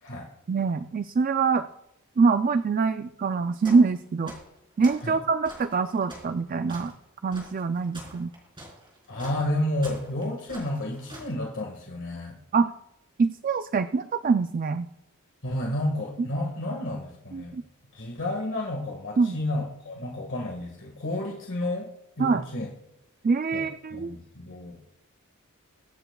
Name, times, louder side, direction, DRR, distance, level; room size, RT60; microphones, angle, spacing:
voice 1, 0.5-1.7 2.2-4.3 4.8-6.9 7.2-8.3 12.5-12.7 13.2-14.9 17.3-17.6 19.2-19.4 22.2-22.4 23.2-24.2, right 4 dB, 40° right, 10 dB, 0.4 m, -24 dB
sound 1, 3.6-3.9 4.2-5.1 5.4-11.3, right 1 dB, 20° right, 4.0 m, -45 dB
voice 2, 9.1-12.4 15.4-17.6 17.9-21.9 22.2-22.7 23.5-23.7 23.9-24.8, left 1 dB, 60° left, 0 dB, 1.8 m, -31 dB
23.0 x 9.0 x 2.3 m, 0.85 s
head